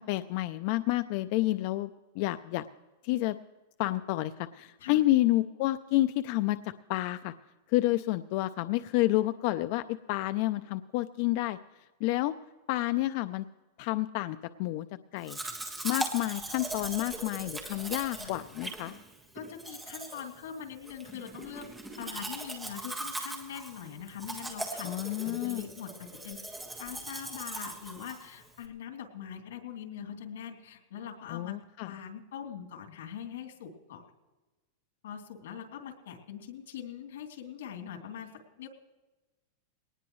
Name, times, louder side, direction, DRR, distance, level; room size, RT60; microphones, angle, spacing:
voice 1, 0.0-2.6 3.0-3.4 3.8-7.3 7.7-11.6 12.0-12.4 12.7-13.5 13.8-14.9 15.1-15.4 15.8-18.9 24.8-25.7 31.3-31.9, left 17 dB, 45° left, 12 dB, 0.4 m, -29 dB
Domestic sounds home sounds, 15.2-28.6, right 2 dB, 5° right, 1.6 m, -40 dB
voice 2, 19.3-21.7 22.0-26.4 26.8-31.5 31.8-34.0 35.0-38.3 38.6-38.7, left 8 dB, 90° left, 2 dB, 2.9 m, -43 dB
21.5 x 19.0 x 3.1 m, 1.2 s
supercardioid pair, 170°, 0 cm